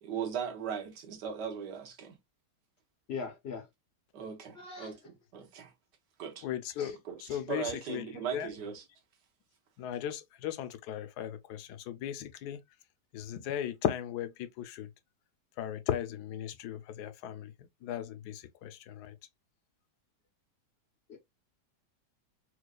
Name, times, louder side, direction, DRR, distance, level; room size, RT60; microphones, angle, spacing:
voice 1, 0.0-2.1 4.1-5.0 5.3-5.7 6.2-6.5 6.8-7.2 7.5-8.8, right 7 dB, 75° right, 1.5 m, -38 dB
voice 2, 3.1-3.7 4.5-4.9 6.8-6.9 21.1-21.2, left 5 dB, 55° left, 0.7 m, -40 dB
voice 3, 6.4-8.1 8.3-8.5 9.8-12.6 13.1-14.9 15.6-17.5 17.8-19.2, left 10 dB, 75° left, 1.1 m, -37 dB
4.5 x 2.4 x 2.2 m
omnidirectional pair, 1.8 m